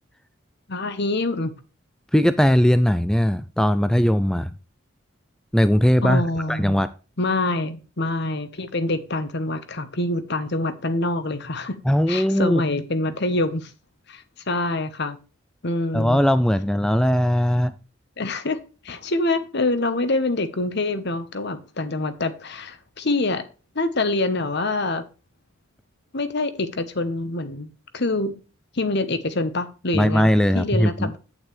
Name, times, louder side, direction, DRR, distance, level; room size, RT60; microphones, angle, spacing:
voice 1, 0.7-1.5 6.0-6.8 7.2-11.8 12.1-13.7 14.1-15.2 15.6-16.2 18.2-18.6 18.8-23.4 23.7-25.0 26.1-27.7 27.9-28.4 28.7-30.3 30.5-31.2, left 2 dB, 55° left, 1.1 m, -25 dB
voice 2, 2.1-4.5 5.5-6.2 6.5-6.9 11.9-12.6 15.9-17.7 29.9-31.1, equal, 5° left, 0.3 m, -19 dB
8.9 x 8.5 x 3.3 m
head